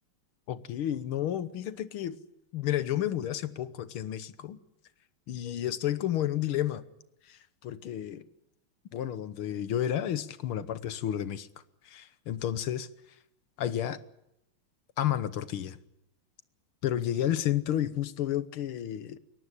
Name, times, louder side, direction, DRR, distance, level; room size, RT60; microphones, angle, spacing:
voice 1, 0.5-2.2 2.5-4.6 5.3-6.8 7.3-8.2 8.9-11.5 11.9-12.9 13.6-14.0 15.0-15.8 16.8-19.2, left 11 dB, 80° left, 1.9 m, -31 dB
22.0 x 18.5 x 9.8 m
omnidirectional pair, 2.3 m